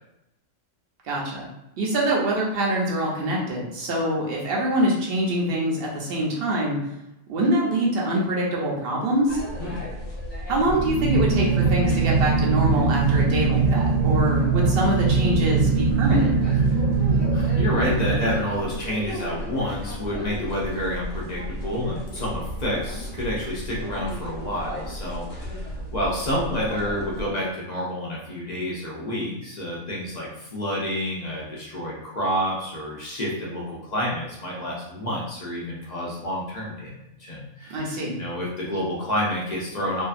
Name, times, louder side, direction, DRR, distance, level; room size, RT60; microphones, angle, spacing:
voice 1, 1.0-1.5 1.8-6.8 7.3-9.4 10.5-16.3 37.7-38.2, right 1 dB, 55° right, -3 dB, 0.8 m, -24 dB
sound 1, 9.3-27.2, equal, 45° left, 0.8 m, -34 dB
sound 2, 10.5-18.9, right 4 dB, 85° right, 1.0 m, -22 dB
voice 2, 17.3-36.9 37.2-40.0, equal, 60° left, -5 dB, 0.4 m, -29 dB
2.7 x 2.3 x 2.4 m, 0.88 s
omnidirectional pair, 1.4 m